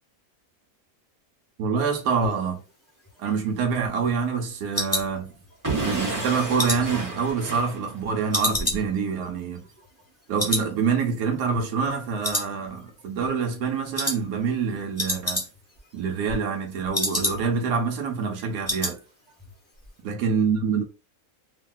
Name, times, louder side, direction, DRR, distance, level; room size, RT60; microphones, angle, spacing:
voice 1, 1.6-2.6 3.2-5.3 5.8-9.7 10.3-15.5 15.9-19.0 20.0-20.8, right 5 dB, 85° right, 1.2 m, -26 dB
sound 1, 3.0-5.8 6.2-7.9 8.3-10.1 10.4-10.7 11.0-11.1 11.6-12.0 12.2-13.0 13.3-13.6 13.9-14.2 14.5-14.6 14.8-15.8 16.1-17.7 18.0-18.1 18.4-19.0 19.3-19.5 19.8-19.9, left 1 dB, 15° left, 0.7 m, -30 dB
Explosion / Shatter, 5.6-8.4, right 3 dB, 15° right, 0.9 m, -31 dB
3.4 x 2.3 x 2.2 m
omnidirectional pair, 1.5 m